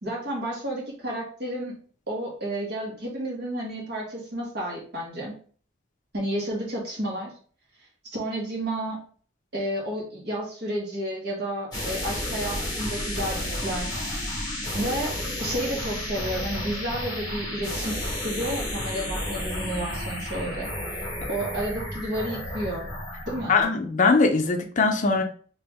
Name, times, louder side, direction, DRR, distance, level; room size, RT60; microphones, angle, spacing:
voice 1, 0.0-1.7 2.1-5.3 6.1-7.3 8.0-9.0 9.5-14.1 14.7-15.1 15.4-20.7 21.3-22.9 23.3-23.6, right 1 dB, 60° right, -2 dB, 1.5 m, -31 dB
sound 1, 11.7-23.6, left 1 dB, 20° left, 1.6 m, -32 dB
voice 2, 23.5-25.2, left 4 dB, 40° left, 5 dB, 0.5 m, -21 dB
3.0 x 3.0 x 3.5 m, 0.44 s
head